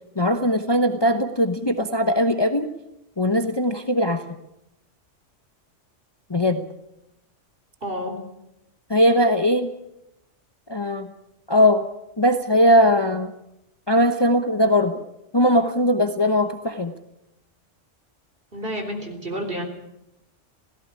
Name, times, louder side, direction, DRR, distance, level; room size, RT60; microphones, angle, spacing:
voice 1, 0.2-2.7 3.2-4.2 6.3-6.6 8.9-9.7 10.7-11.1 11.5-11.9 12.2-13.3 13.9-15.0 15.3-16.9, equal, 20° left, 7 dB, 1.0 m, -20 dB
voice 2, 7.8-8.2 18.5-19.6, equal, 45° right, 4 dB, 4.1 m, -30 dB
17.5 x 15.5 x 9.7 m, 0.86 s
omnidirectional pair, 1.3 m